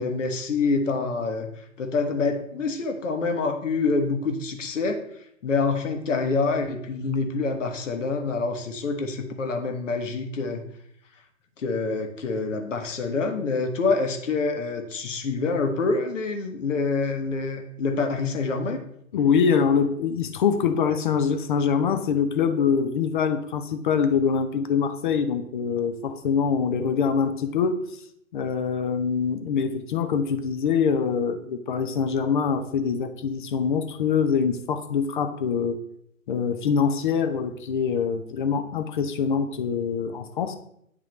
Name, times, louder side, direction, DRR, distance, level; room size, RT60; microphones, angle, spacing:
voice 1, 0.0-1.5 1.8-5.0 5.4-10.6 11.6-18.8, left 4 dB, 65° left, 5 dB, 1.2 m, -26 dB
voice 2, 19.1-27.8 28.3-35.8 36.3-40.5, left 6 dB, 40° left, 8 dB, 0.6 m, -24 dB
9.6 x 3.7 x 3.1 m, 0.73 s
figure-of-eight pair, 135°, 40 cm